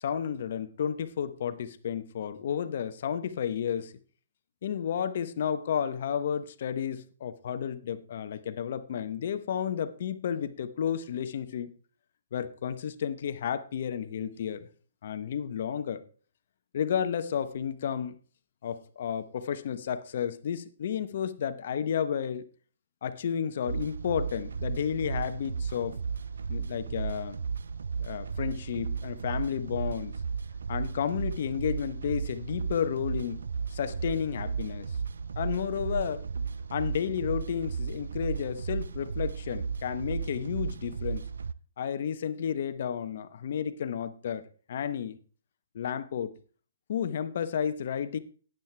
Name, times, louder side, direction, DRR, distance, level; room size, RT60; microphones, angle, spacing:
voice 1, 0.0-3.9 4.6-11.7 12.3-14.7 15.0-16.0 16.7-18.2 18.6-22.4 23.0-26.0 26.5-27.4 28.0-30.1 30.7-33.5 33.7-35.0 35.4-36.3 36.7-41.2 41.8-45.2 45.7-46.4 46.9-48.2, left 8 dB, 55° left, 0.9 m, -32 dB
sound 1, 23.7-41.5, right 5 dB, 85° right, 0.4 m, -34 dB
12.0 x 9.1 x 3.3 m
hypercardioid pair, 155°, 0 cm